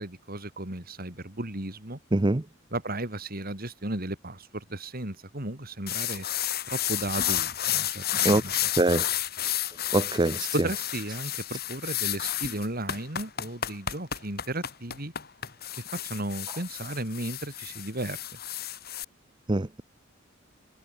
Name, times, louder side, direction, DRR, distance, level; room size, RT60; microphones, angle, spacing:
voice 1, 0.0-2.0 2.7-6.3 6.7-8.6 10.5-15.1 15.7-18.2, right 1 dB, 50° right, 4.3 m, -35 dB
voice 2, 2.1-2.4 8.2-8.4 8.8-9.1 9.9-10.5 19.5-19.8, right 2 dB, 25° right, 0.8 m, -23 dB
sound 1, 5.9-19.0, left 11 dB, 50° left, 3.5 m, -31 dB
head